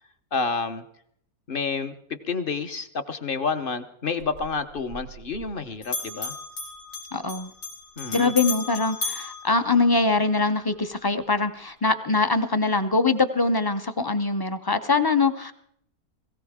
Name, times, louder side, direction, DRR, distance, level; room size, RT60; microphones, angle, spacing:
voice 1, 0.3-0.8 1.5-1.9 2.2-6.3 8.0-8.3, left 4 dB, 40° left, 9 dB, 1.0 m, -29 dB
Bell, 4.2-5.6 5.8-10.3, left 3 dB, 85° left, 2.6 m, -35 dB
voice 2, 7.1-7.5 8.1-15.5, left 3 dB, 25° left, 9 dB, 0.5 m, -23 dB
19.0 x 17.0 x 3.6 m, 0.68 s
omnidirectional pair, 1.6 m